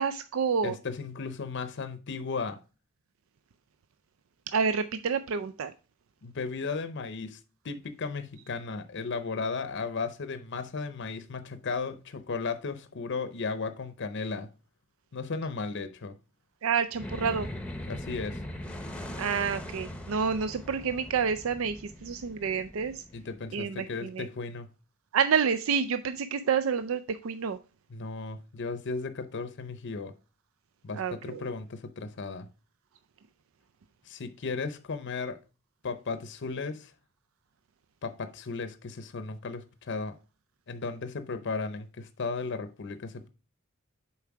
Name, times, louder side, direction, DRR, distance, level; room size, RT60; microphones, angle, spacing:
voice 1, 0.0-0.8 4.5-5.7 16.6-17.5 19.2-23.0 23.5-24.3 25.1-27.6 30.9-31.4, right 6 dB, 70° right, 0.4 m, -29 dB
voice 2, 0.6-2.6 6.2-7.4 7.6-14.5 15.1-16.2 17.9-18.4 23.1-24.7 27.9-30.1 30.8-32.5 34.1-35.4 35.8-36.9 38.0-40.2 40.7-43.3, left 4 dB, 60° left, 0.6 m, -35 dB
sound 1, 16.9-23.5, left 1 dB, 5° left, 0.8 m, -40 dB
7.1 x 4.6 x 4.6 m
head